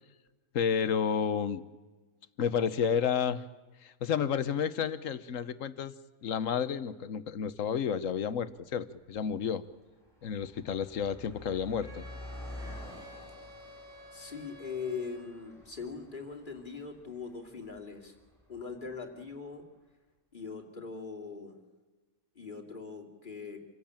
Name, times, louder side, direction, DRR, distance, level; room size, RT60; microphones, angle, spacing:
voice 1, 0.5-1.6 2.4-3.4 3.8-5.9 6.2-9.6 10.2-12.0, left 7 dB, 65° left, 14 dB, 1.3 m, -31 dB
Car passing by, 8.6-8.7 8.9-19.3, left 1 dB, ahead, 7.7 m, -49 dB
Wind instrument woodwind instrument, 11.8-15.6, left 2 dB, 60° right, 3.8 m, -52 dB
voice 2, 14.1-18.2 18.5-19.6 20.3-21.6 22.3-23.6, left 5 dB, 35° left, 2 dB, 2.9 m, -41 dB
27.0 x 16.0 x 8.8 m, 1.3 s
omnidirectional pair, 1.5 m